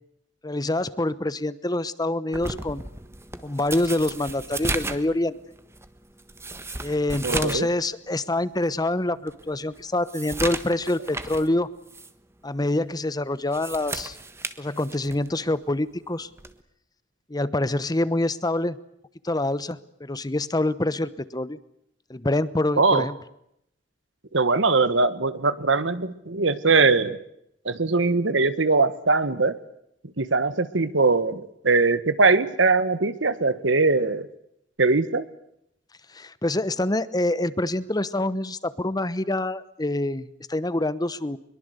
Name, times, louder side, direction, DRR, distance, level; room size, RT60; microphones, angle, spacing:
voice 1, 0.4-2.8 3.4-5.3 6.8-11.7 12.4-14.2 14.6-16.3 17.3-18.8 19.2-21.6 22.1-23.2 36.1-41.4, left 1 dB, 20° left, 16 dB, 1.0 m, -26 dB
sound 1, 2.3-7.7 8.1-8.2 8.7-8.8 9.3-11.5 11.9-12.1 13.3-15.3 16.4-16.6, right 2 dB, 15° right, 1.4 m, -34 dB
voice 2, 7.2-7.7 22.8-23.1 24.3-27.2 27.6-29.6 30.2-34.3 34.8-35.2, right 3 dB, 90° right, 13 dB, 1.5 m, -21 dB
23.0 x 23.0 x 8.1 m, 0.76 s
head